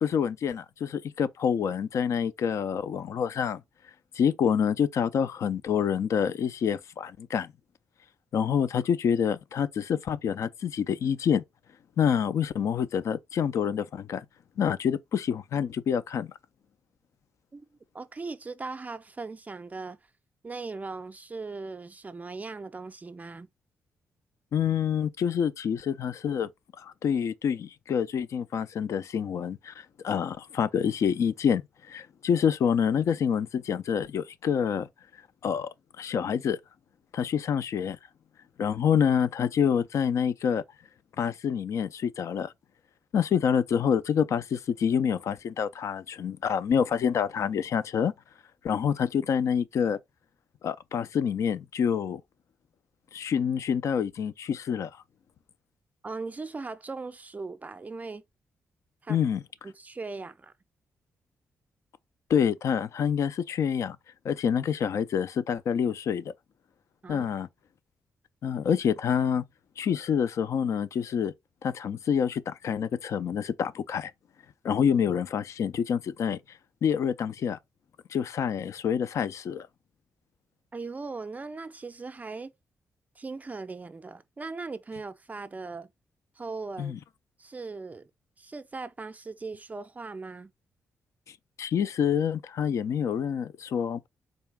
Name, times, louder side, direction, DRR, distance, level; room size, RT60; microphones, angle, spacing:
voice 1, 0.0-3.6 4.2-7.5 8.3-11.4 12.0-14.2 14.6-16.3 24.5-26.5 26.8-34.9 35.4-35.7 36.0-36.6 37.1-38.0 38.6-40.6 41.2-42.5 43.1-48.1 48.6-50.0 50.6-52.2 53.1-54.9 59.1-59.4 62.3-64.0 64.2-66.3 67.1-67.5 68.4-69.4 69.8-71.3 71.6-74.1 74.6-76.4 76.8-77.6 78.1-79.7 86.8-87.0 91.6-94.1, left 7 dB, 65° left, 0.4 m, -27 dB
voice 2, 17.9-20.0 20.4-23.5 56.0-58.2 59.0-59.2 59.6-60.5 67.0-67.3 80.7-82.5 83.2-85.9 86.4-87.0 87.4-88.1 88.4-90.5, right 3 dB, 30° right, 0.4 m, -39 dB
3.9 x 2.3 x 3.4 m
supercardioid pair, 55°, 5 cm